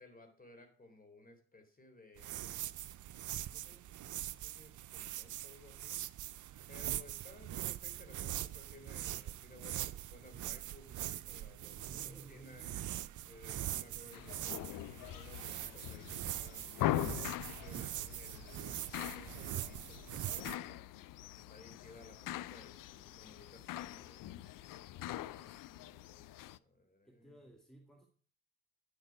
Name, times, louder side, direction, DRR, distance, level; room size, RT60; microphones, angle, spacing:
voice 1, 0.0-2.8 3.5-6.0 6.7-12.7 13.3-20.8 21.5-24.3 25.0-27.5, left 2 dB, 25° left, 5 dB, 3.6 m, -59 dB
sound 1, 2.2-20.6, right 13 dB, 60° right, 0.6 m, -43 dB
voice 2, 11.9-13.4 13.9-14.6 21.4-21.5 27.0-28.1, right 1 dB, ahead, 2 dB, 2.1 m, -58 dB
sound 2, 14.1-26.6, left 14 dB, 65° left, 0.5 m, -42 dB
10.0 x 6.7 x 5.9 m, 0.43 s
supercardioid pair, 50°, 35 cm